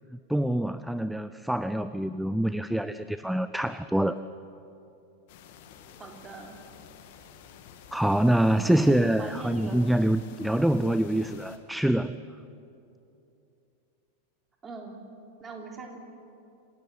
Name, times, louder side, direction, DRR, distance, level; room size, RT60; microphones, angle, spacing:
voice 1, 0.3-4.2 7.9-12.2, right 1 dB, ahead, 13 dB, 0.5 m, -25 dB
sound 1, 5.3-11.6, left 8 dB, 50° left, 1.9 m, -50 dB
voice 2, 6.0-6.6 8.7-9.8 14.6-15.0 15.4-16.0, right 3 dB, 20° right, 1 dB, 3.7 m, -41 dB
27.5 x 16.5 x 8.1 m, 2.7 s
figure-of-eight pair, 90°, 0 cm